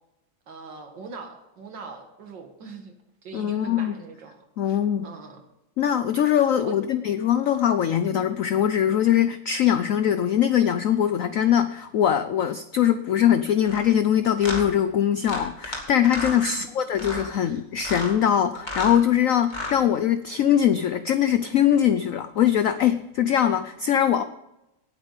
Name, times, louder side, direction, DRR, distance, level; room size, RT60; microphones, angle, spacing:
voice 1, 0.5-2.9 3.2-5.4 6.6-6.8 16.5-16.7 17.3-17.6, right 4 dB, 70° right, 5 dB, 2.3 m, -41 dB
voice 2, 3.3-4.0 4.6-5.1 5.8-24.2, left 10 dB, 85° left, 12 dB, 0.7 m, -22 dB
sound 1, 13.6-13.8 14.4-14.6 15.2-15.8 16.0-16.4 16.9-17.3 17.8-18.1 18.5-19.0 19.4-19.8, left 1 dB, 25° left, 2.4 m, -32 dB
18.0 x 8.8 x 4.0 m, 0.92 s
omnidirectional pair, 2.1 m